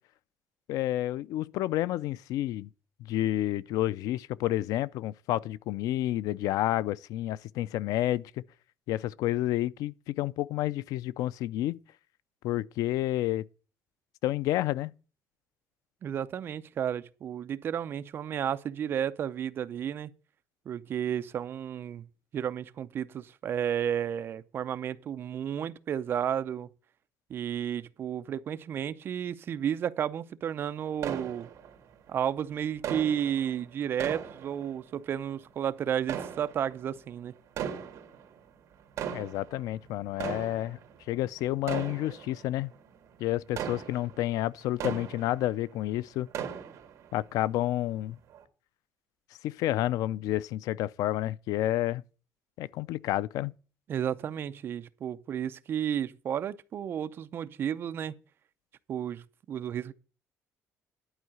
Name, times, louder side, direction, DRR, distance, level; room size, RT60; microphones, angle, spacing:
voice 1, 0.7-2.7 3.0-8.3 8.9-11.8 12.4-13.5 14.2-14.9 39.1-40.8 41.1-42.7 43.2-46.3 47.1-48.2 49.4-52.0 52.6-53.5, left 14 dB, 85° left, 0.4 m, -30 dB
voice 2, 16.0-20.1 20.7-22.1 22.3-26.7 27.3-31.5 32.1-37.3 53.9-58.1 58.9-59.9, right 9 dB, 40° right, 0.5 m, -32 dB
sound 1, 31.0-32.1 32.8-35.2 36.0-37.0 37.5-38.4 38.8-45.8 46.1-47.2 47.6-47.7 48.3-48.4, right 8 dB, 55° right, 1.9 m, -38 dB
11.5 x 4.7 x 7.7 m
cardioid pair, 175°, 6 cm